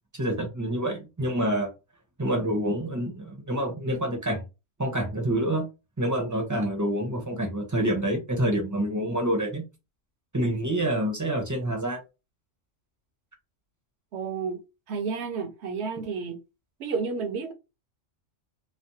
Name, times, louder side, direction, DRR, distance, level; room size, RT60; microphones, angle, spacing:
voice 1, 0.1-1.7 2.2-4.4 4.8-5.7 6.0-9.6 10.3-12.0, right 1 dB, 20° right, 0.6 m, -27 dB
voice 2, 14.1-14.6 14.9-16.4 16.8-17.5, right 5 dB, 65° right, 0.9 m, -31 dB
3.2 x 2.0 x 2.6 m
omnidirectional pair, 1.3 m